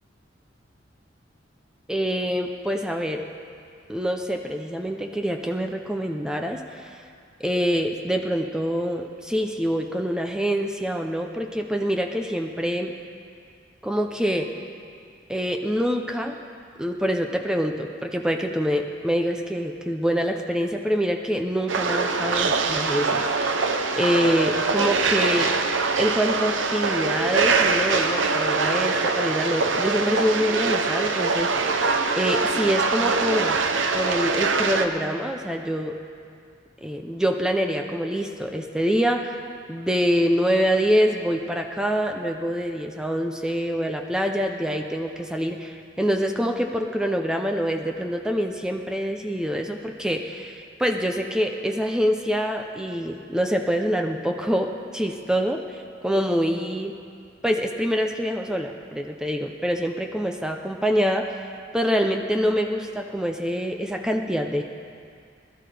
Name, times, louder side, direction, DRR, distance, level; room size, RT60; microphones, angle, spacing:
voice 1, 1.9-3.2 3.9-6.9 7.4-12.9 13.8-14.5 15.3-16.3 16.8-25.5 26.0-31.8 32.1-33.6 33.9-36.0 36.8-39.4 39.7-56.9 57.4-61.3 61.7-64.6, equal, 5° right, 3 dB, 0.6 m, -25 dB
sound 1, 21.7-34.9, right 4 dB, 80° right, 0.8 m, -23 dB
20.5 x 12.5 x 3.4 m, 2.3 s
head